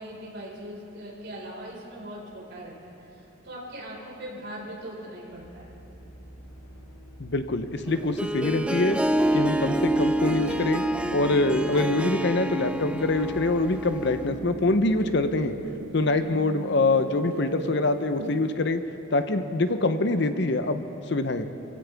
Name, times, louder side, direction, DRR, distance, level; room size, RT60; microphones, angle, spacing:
voice 1, 0.0-2.7 3.1-5.7, right 1 dB, 55° right, -5 dB, 4.7 m, -40 dB
sound 1, 5.3-16.2, equal, 80° left, 3.1 m, -49 dB
voice 2, 7.2-9.0 9.3-10.8 11.1-15.6 15.9-18.8 19.1-21.5, left 2 dB, 55° left, 9 dB, 0.7 m, -24 dB
Harp, 7.9-14.4, right 1 dB, 5° right, 0.3 m, -27 dB
sound 2, 10.0-18.6, right 4 dB, 85° right, 0.5 m, -39 dB
25.5 x 16.0 x 3.5 m, 2.9 s
head